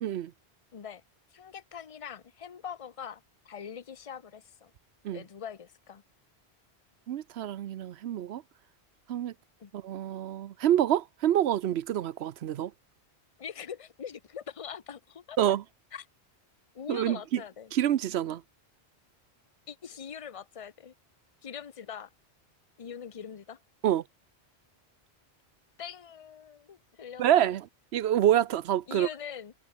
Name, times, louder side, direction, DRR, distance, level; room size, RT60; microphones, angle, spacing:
voice 1, 0.0-0.3 5.0-5.2 7.1-8.4 9.1-9.3 9.7-12.7 15.4-15.6 16.9-17.4 17.7-18.4 23.8-24.0 27.2-27.7 27.9-29.1, right 11 dB, 80° right, 0.9 m, -27 dB
voice 2, 0.7-1.0 1.3-4.7 5.1-6.0 9.6-9.7 13.4-15.4 15.9-16.1 16.7-17.7 19.7-20.9 21.4-22.1 22.8-23.6 25.8-27.5 28.9-29.5, left 7 dB, 35° left, 0.8 m, -43 dB
omnidirectional pair, 1.1 m